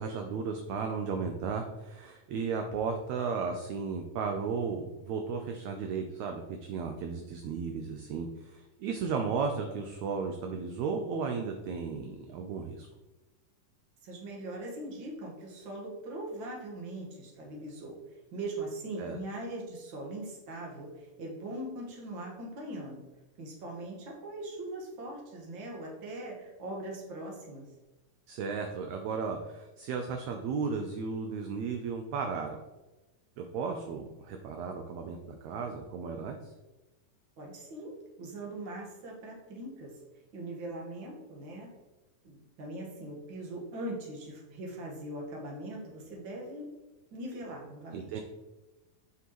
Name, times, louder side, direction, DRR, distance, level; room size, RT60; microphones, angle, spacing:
voice 1, 0.0-12.9 19.0-19.2 28.3-32.6 33.4-36.5 47.9-48.2, right 5 dB, 75° right, 4 dB, 1.7 m, -34 dB
voice 2, 14.0-18.0 18.3-23.1 23.4-27.7 37.4-40.0 40.3-41.7 42.2-46.7 47.1-48.2, right 1 dB, 45° right, -1 dB, 1.8 m, -41 dB
7.7 x 5.9 x 3.0 m, 1.1 s
omnidirectional pair, 3.7 m